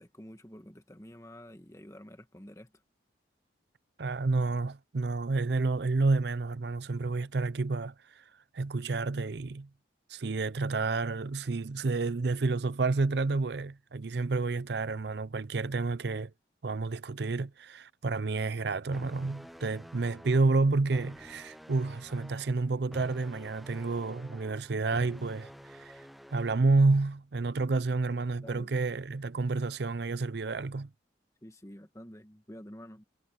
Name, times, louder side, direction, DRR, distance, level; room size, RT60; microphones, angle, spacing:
voice 1, 0.0-2.7 28.4-28.7 31.4-33.0, equal, 15° left, 1.6 m, -49 dB
voice 2, 4.0-8.2 8.5-9.7 10.1-16.3 16.6-26.0 26.3-30.9, right 3 dB, 60° right, 0.5 m, -30 dB
sound 1, 18.9-26.9, equal, ahead, 0.5 m, -50 dB
head